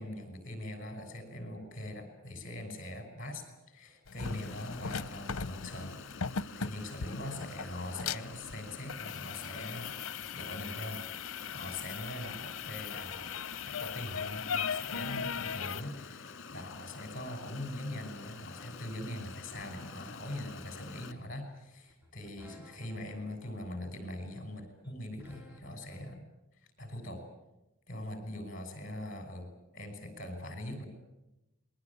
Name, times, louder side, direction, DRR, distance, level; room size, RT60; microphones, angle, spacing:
voice 1, 0.0-6.0 6.3-10.0 10.3-13.3 13.6-26.3 26.8-27.2 27.9-29.5 29.7-30.9, left 1 dB, 40° left, 7 dB, 6.0 m, -42 dB
sound 1, 4.1-15.8, left 6 dB, 80° left, 0.8 m, -38 dB
Stream, 4.2-21.1, left 5 dB, 60° left, 1.8 m, -48 dB
sound 2, 19.5-26.2, left 1 dB, 10° right, 3.3 m, -58 dB
27.0 x 21.0 x 8.6 m, 0.94 s
head